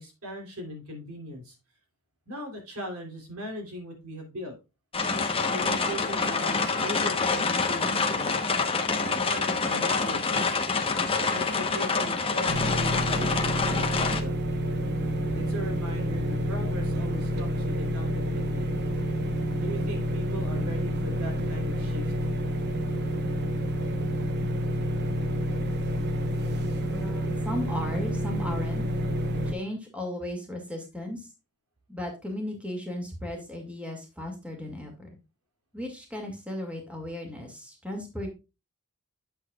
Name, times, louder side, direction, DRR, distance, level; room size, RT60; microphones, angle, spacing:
voice 1, 0.0-1.5 2.3-4.6 5.5-8.4 9.0-10.6 11.3-14.4 15.3-18.7 19.5-22.1, equal, 70° right, 2 dB, 3.3 m, -39 dB
sound 1, 4.9-14.2, left 4 dB, 25° left, 1.0 m, -26 dB
sound 2, 12.5-29.5, equal, 50° right, 1.1 m, -29 dB
voice 2, 26.8-28.8 29.5-31.3 31.9-35.2 35.7-38.3, left 1 dB, 5° right, 2 dB, 2.2 m, -36 dB
8.5 x 8.1 x 2.4 m, 0.27 s
head